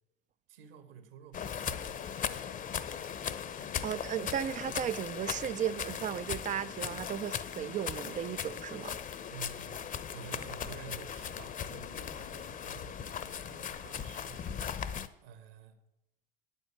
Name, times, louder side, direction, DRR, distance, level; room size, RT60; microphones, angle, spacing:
voice 1, 0.5-2.5 9.3-9.8 10.1-14.5 15.2-15.8, right 7 dB, 65° right, 2.0 m, -50 dB
heavy steps on grass, 1.3-15.1, left 8 dB, 25° left, 0.8 m, -38 dB
voice 2, 3.8-9.0, right 10 dB, 25° right, 0.4 m, -35 dB
9.7 x 8.1 x 8.8 m
hypercardioid pair, 80°, 30 cm